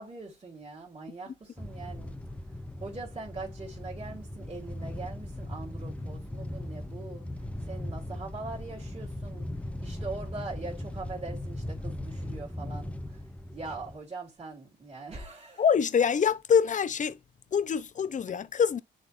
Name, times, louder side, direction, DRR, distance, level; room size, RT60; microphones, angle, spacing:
voice 1, 0.0-2.2 2.8-9.5 9.8-13.2 13.5-15.6, right 3 dB, 30° right, 3.3 m, -42 dB
sound 1, 1.6-14.0, left 1 dB, 5° left, 0.8 m, -38 dB
voice 2, 15.6-17.2 17.5-18.8, left 7 dB, 40° left, 0.8 m, -25 dB
10.5 x 3.8 x 2.7 m
cardioid pair, 90°, 20 cm